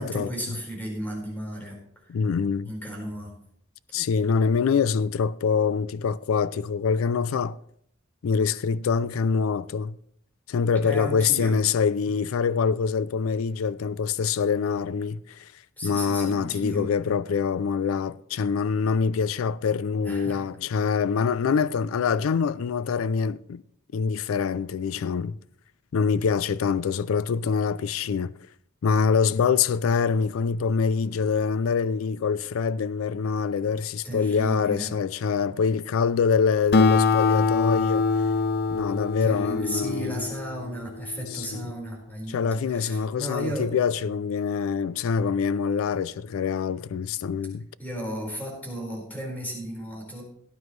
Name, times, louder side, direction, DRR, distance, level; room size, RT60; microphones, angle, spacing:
voice 1, 0.0-1.8 2.0-2.2 2.6-3.3 10.7-11.6 15.8-16.9 20.0-20.4 34.0-34.9 39.2-43.7 47.8-50.2, equal, 10° left, 4.6 m, -34 dB
voice 2, 2.1-2.7 3.9-7.6 8.2-10.0 10.5-15.5 15.8-23.6 23.9-25.4 25.9-28.3 28.8-38.1 38.7-40.2 41.3-41.7 42.3-47.7, left 6 dB, 90° left, 0.4 m, -25 dB
Acoustic guitar, 36.7-41.6, left 4 dB, 50° left, 0.6 m, -24 dB
17.5 x 9.5 x 3.2 m
head